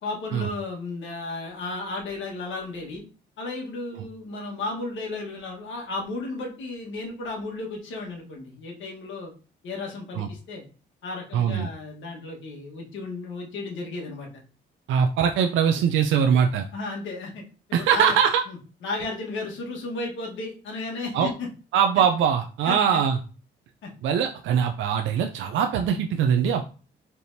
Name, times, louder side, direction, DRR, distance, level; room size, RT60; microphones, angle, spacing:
voice 1, 0.0-3.0 3.4-9.3 9.6-10.7 11.0-14.4 16.7-18.2 18.5-21.5 22.6-22.7 23.8-23.9, left 3 dB, 75° left, 0 dB, 1.4 m, -34 dB
voice 2, 11.3-11.7 14.9-16.7 17.7-18.4 21.1-21.3 21.7-23.2 24.0-26.6, right 7 dB, 75° right, 5 dB, 0.4 m, -22 dB
4.3 x 3.4 x 2.7 m, 0.36 s
cardioid pair, 90°, 20 cm